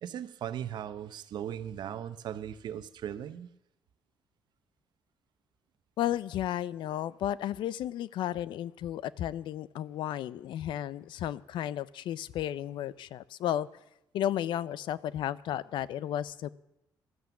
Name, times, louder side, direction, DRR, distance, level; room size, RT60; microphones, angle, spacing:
voice 1, 0.0-3.5, right 10 dB, 65° right, 0.9 m, -38 dB
voice 2, 6.0-13.7 14.1-16.5, left 11 dB, 85° left, 0.5 m, -33 dB
14.0 x 13.0 x 7.1 m
cardioid pair, 150°, 8 cm